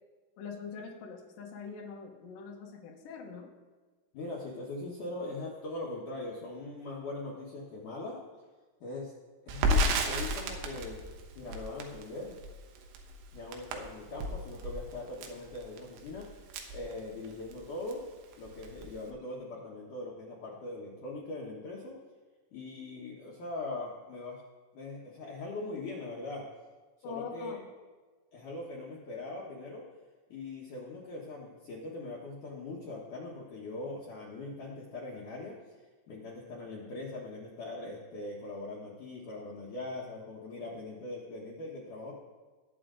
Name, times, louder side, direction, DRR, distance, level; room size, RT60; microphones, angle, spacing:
voice 1, 0.4-3.5 27.0-27.6, left 5 dB, 65° left, 0 dB, 2.4 m, -43 dB
voice 2, 4.1-8.2 8.8-9.1 9.4-11.0 11.3-12.4 13.3-16.3 16.7-18.0 18.4-21.9 22.5-24.4 24.7-26.5 27.0-27.6 28.3-29.8 30.3-35.6 36.1-42.1, left 2 dB, 80° left, -4 dB, 1.8 m, -41 dB
Crackle, 9.5-17.6 17.9-18.0 18.3-19.1, equal, 85° right, 3.7 m, -33 dB
20.0 x 7.6 x 3.8 m, 1.4 s
omnidirectional pair, 5.8 m